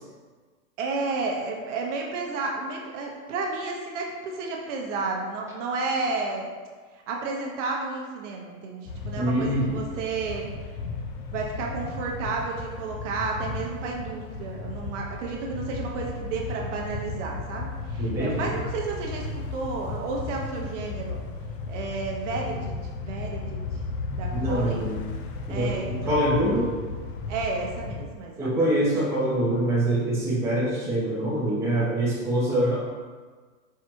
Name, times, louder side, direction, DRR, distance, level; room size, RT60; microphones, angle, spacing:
voice 1, 0.8-6.5 7.1-10.4 11.3-21.2 21.7-23.6 24.1-25.0 25.5-26.2 27.3-28.5, right 3 dB, 55° right, -1 dB, 0.9 m, -32 dB
sound 1, 8.9-28.1, left 3 dB, 40° left, 0.4 m, -34 dB
voice 2, 9.2-9.7 18.0-18.5 24.3-24.9 25.5-26.7 28.4-32.8, right 1 dB, 5° right, -8 dB, 0.8 m, -24 dB
4.6 x 2.4 x 4.4 m, 1.5 s
hypercardioid pair, 145°, 43 cm